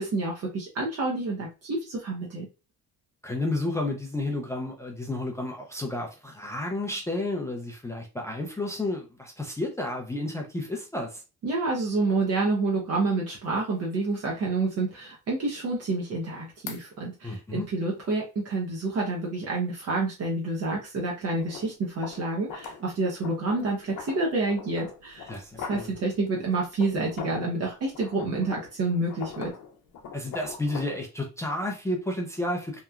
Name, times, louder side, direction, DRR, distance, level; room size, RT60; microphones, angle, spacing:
voice 1, 0.0-2.5 11.4-25.3 25.6-29.5, right 3 dB, 50° right, 0.8 m, -28 dB
voice 2, 3.2-11.2 17.2-17.7 25.3-25.9 30.1-32.8, left 1 dB, 10° left, 0.4 m, -31 dB
sound 1, 13.4-13.5 14.0-14.1 16.7-16.8 21.4-27.5 27.9-31.0, left 6 dB, 80° left, 0.6 m, -42 dB
2.9 x 2.2 x 2.3 m
cardioid pair, 145°, 31 cm